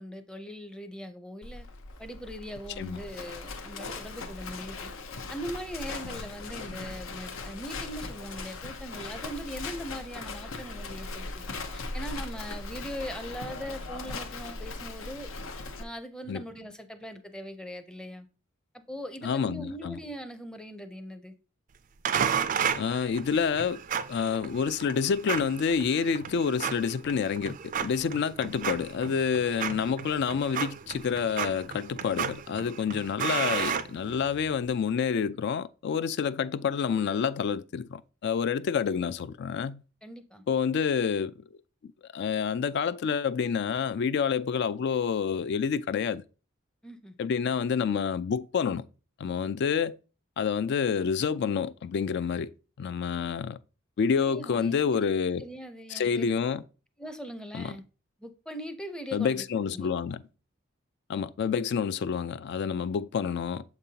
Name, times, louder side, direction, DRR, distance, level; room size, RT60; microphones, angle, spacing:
voice 1, 0.0-1.7 2.0-4.9 5.3-11.5 11.7-15.3 15.8-18.3 18.7-21.3 40.0-40.4 46.8-47.1 54.2-55.1 55.4-56.4 57.0-57.8 58.2-59.5 59.7-59.9, equal, 5° left, 0.5 m, -40 dB
Livestock farm animals working animals, 1.4-15.8, left 3 dB, 85° left, 0.7 m, -39 dB
voice 2, 19.2-20.0 22.7-23.8 24.1-39.8 40.5-41.3 42.1-46.2 47.2-48.9 49.2-50.0 50.4-52.5 52.8-53.6 54.0-55.4 55.9-56.6 57.5-57.8 59.1-60.2 61.1-63.6, left 6 dB, 55° left, 0.3 m, -28 dB
sound 1, 22.1-34.5, right 8 dB, 40° right, 0.4 m, -33 dB
6.9 x 5.3 x 2.8 m
head